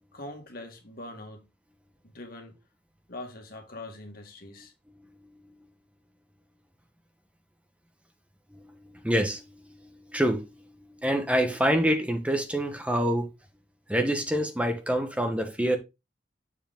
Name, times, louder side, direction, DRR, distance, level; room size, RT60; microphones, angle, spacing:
voice 1, 0.1-1.5 2.0-2.6 3.1-4.7, left 2 dB, 55° left, 2.1 m, -42 dB
voice 2, 8.5-13.3 13.9-15.8, equal, 5° right, 1.2 m, -27 dB
7.3 x 4.9 x 3.8 m
head